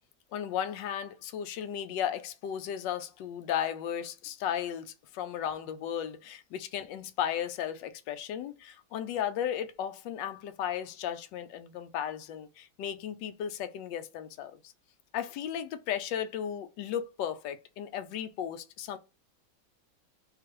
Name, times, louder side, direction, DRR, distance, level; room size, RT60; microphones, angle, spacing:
voice 1, 0.3-14.5 15.1-19.0, left 9 dB, 80° left, 1.2 m, -35 dB
3.8 x 2.8 x 2.9 m
omnidirectional pair, 2.0 m